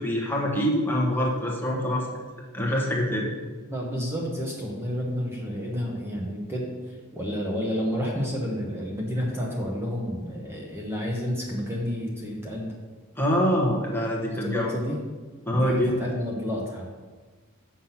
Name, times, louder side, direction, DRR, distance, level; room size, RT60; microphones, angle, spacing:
voice 1, 0.0-2.1 2.5-3.3 13.2-14.7 15.4-15.9, equal, 10° left, -2 dB, 1.3 m, -25 dB
voice 2, 3.7-12.7 14.4-15.0 15.5-16.8, equal, 10° right, -2 dB, 1.1 m, -30 dB
7.4 x 6.0 x 5.8 m, 1.4 s
head